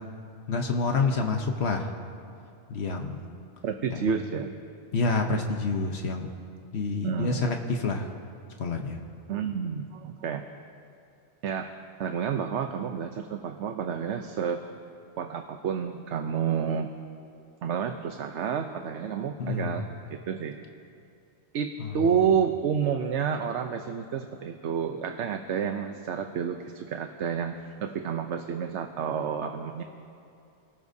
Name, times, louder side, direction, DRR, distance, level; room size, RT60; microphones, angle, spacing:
voice 1, 0.5-1.9 2.7-3.3 3.9-4.2 4.9-6.3 6.7-8.1 8.6-9.0 19.4-19.8 21.8-21.9, left 3 dB, 70° left, 3 dB, 1.2 m, -28 dB
voice 2, 3.6-4.5 7.0-7.4 9.3-10.4 11.4-11.7 12.0-14.6 15.2-16.9 17.6-20.6 21.5-27.5 27.8-29.8, right 7 dB, 85° right, 6 dB, 1.0 m, -29 dB
25.5 x 18.0 x 2.7 m, 2.6 s
omnidirectional pair, 1.2 m